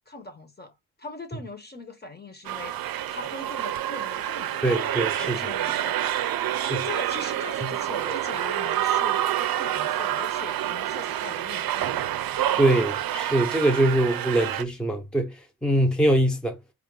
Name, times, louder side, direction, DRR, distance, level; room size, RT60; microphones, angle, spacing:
voice 1, 0.1-4.6 5.2-6.0 6.5-12.1, left 3 dB, 25° left, 1.2 m, -41 dB
sound 1, 2.4-14.6, right 12 dB, 65° right, 0.5 m, -28 dB
voice 2, 4.6-5.4 6.6-6.9 7.6-7.7 12.5-16.6, right 1 dB, ahead, 0.8 m, -23 dB
4.7 x 2.5 x 3.8 m
cardioid pair, 95°, 38 cm